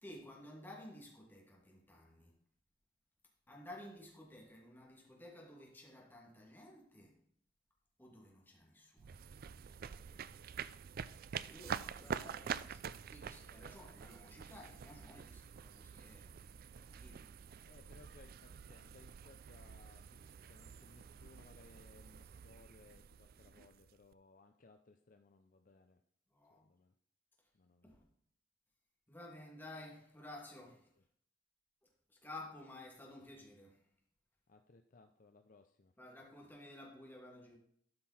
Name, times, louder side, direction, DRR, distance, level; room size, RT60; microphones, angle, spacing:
voice 1, 0.0-2.3 3.5-7.2 8.0-9.2 11.3-12.8 13.1-17.4 26.3-26.7 27.8-28.1 29.1-30.9 32.1-33.8 36.0-37.6, left 1 dB, 10° left, 2.5 m, -54 dB
sound 1, 9.0-24.1, right 7 dB, 55° right, 0.4 m, -47 dB
voice 2, 12.0-12.8 17.6-26.0 26.5-26.9 27.5-28.0 31.0-31.1 34.5-35.9, left 3 dB, 45° left, 0.6 m, -64 dB
12.5 x 5.9 x 4.3 m
head